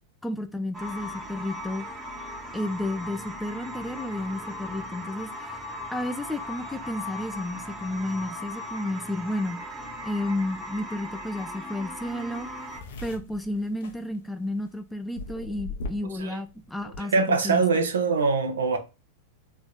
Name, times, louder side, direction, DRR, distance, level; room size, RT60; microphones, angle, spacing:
voice 1, 0.2-1.9 2.5-5.5 5.9-9.6 10.0-12.5 13.0-17.9, left 1 dB, 5° left, 0.4 m, -32 dB
sound 1, 0.7-12.8, left 1 dB, 15° right, 1.1 m, -38 dB
sound 2, 12.0-12.1 12.3-14.7 15.1-16.2 16.5-17.0, left 2 dB, 55° left, 0.8 m, -38 dB
voice 2, 17.1-18.8, right 4 dB, 65° right, 0.8 m, -23 dB
3.9 x 3.1 x 3.7 m
figure-of-eight pair, 90°, 0 cm